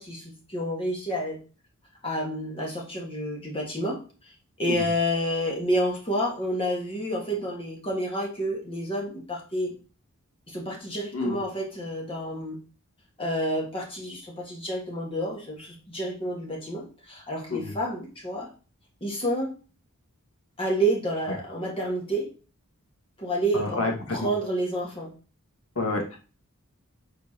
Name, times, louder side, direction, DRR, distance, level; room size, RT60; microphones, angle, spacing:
voice 1, 0.0-1.4 2.0-4.0 4.2-4.3 4.6-9.7 10.5-12.6 13.2-18.5 19.0-19.5 20.6-22.3 23.2-25.1, right 1 dB, 25° left, -1 dB, 1.7 m, -29 dB
voice 2, 23.5-24.3 25.7-26.2, left 3 dB, 80° left, 0 dB, 1.8 m, -28 dB
7.4 x 4.5 x 2.9 m, 0.36 s
head